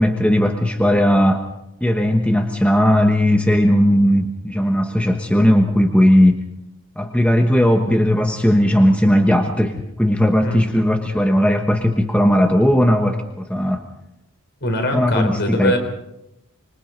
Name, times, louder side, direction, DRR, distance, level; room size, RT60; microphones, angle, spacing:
voice 1, 0.0-1.4 1.8-6.4 7.0-13.8 14.9-15.7, equal, 5° left, 4 dB, 1.1 m, -17 dB
voice 2, 14.6-15.8, left 1 dB, 50° left, 5 dB, 4.2 m, -22 dB
26.0 x 22.5 x 5.3 m, 0.85 s
head